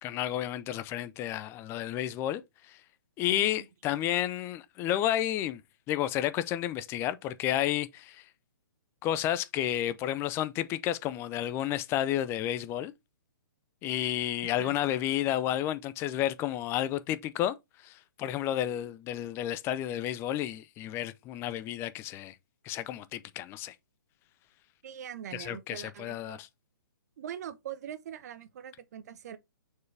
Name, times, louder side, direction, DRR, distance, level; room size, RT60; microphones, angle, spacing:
voice 1, 0.0-2.4 2.7-2.8 3.2-5.6 5.9-8.2 9.0-12.9 13.8-17.6 17.8-22.3 22.6-23.7 25.3-26.5, left 12 dB, 20° left, 0.6 m, -31 dB
voice 2, 3.3-3.7 14.4-14.8 24.8-26.4 27.2-29.4, right 9 dB, 50° right, 0.9 m, -42 dB
6.3 x 4.7 x 3.3 m
figure-of-eight pair, 130°, 11 cm